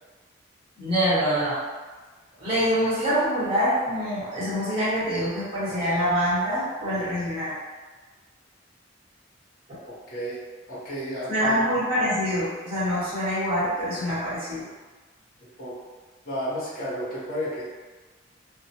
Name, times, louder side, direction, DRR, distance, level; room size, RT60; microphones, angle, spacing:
voice 1, 0.8-1.6 2.4-7.5 9.7-9.8 11.3-14.6, equal, 30° right, -11 dB, 1.1 m, -25 dB
voice 2, 9.8-10.4 10.7-11.6 15.4-15.8 16.2-17.6, equal, 50° left, -9 dB, 0.8 m, -32 dB
2.2 x 2.1 x 2.8 m, 1.3 s
head